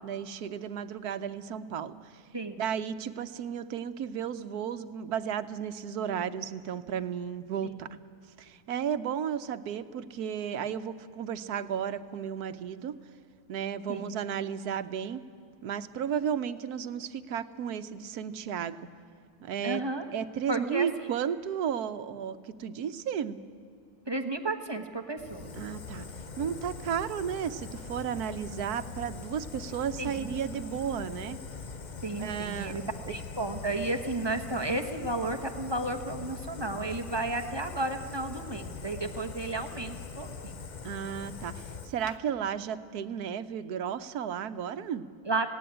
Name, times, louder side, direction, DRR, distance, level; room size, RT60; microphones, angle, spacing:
voice 1, 0.0-2.2 2.6-7.9 8.4-13.0 13.5-15.2 15.6-18.8 19.4-19.8 20.1-23.4 25.6-26.1 26.4-31.4 32.2-33.2 40.8-45.1, right 8 dB, 85° right, 12 dB, 1.3 m, -33 dB
voice 2, 19.6-20.0 20.5-20.9 24.1-25.5 30.0-30.3 32.0-32.8 33.1-40.5 45.3-45.5, right 2 dB, 20° right, 5 dB, 1.1 m, -33 dB
Fire, 25.2-42.2, left 5 dB, 40° left, 0.8 m, -42 dB
18.0 x 17.0 x 10.0 m, 2.3 s
omnidirectional pair, 1.6 m